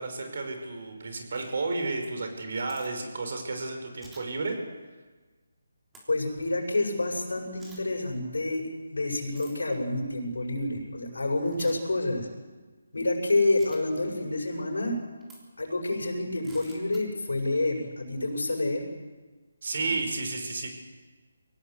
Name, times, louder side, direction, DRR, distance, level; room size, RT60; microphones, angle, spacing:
voice 1, 0.0-4.6 19.6-20.7, right 3 dB, 55° right, 5 dB, 5.6 m, -32 dB
sound 1, 2.3-2.9 4.0-4.2 5.9-6.0 7.6-7.8 9.3-9.6 11.5-11.8 13.6-13.8 15.2-15.4 16.4-17.0, right 1 dB, 10° right, 3.4 m, -51 dB
voice 2, 6.1-12.3 12.9-15.0 15.6-18.8, left 2 dB, 85° left, 1 dB, 7.6 m, -28 dB
24.0 x 18.0 x 8.4 m, 1.3 s
hypercardioid pair, 165°, 0 cm